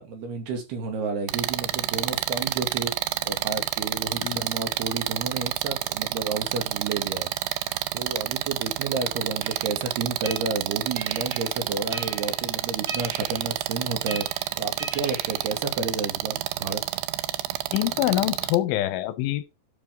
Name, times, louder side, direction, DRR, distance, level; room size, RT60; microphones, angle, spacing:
voice 1, 0.0-2.9 3.2-7.3 7.9-14.3 14.6-16.8, right 4 dB, 60° right, 4.1 m, -31 dB
sound 1, 1.3-18.6, right 15 dB, 85° right, 2.4 m, -29 dB
sound 2, 9.4-16.1, right 1 dB, 30° right, 3.3 m, -42 dB
voice 2, 17.7-19.4, left 15 dB, 85° left, 3.3 m, -25 dB
12.0 x 7.2 x 3.7 m
omnidirectional pair, 5.4 m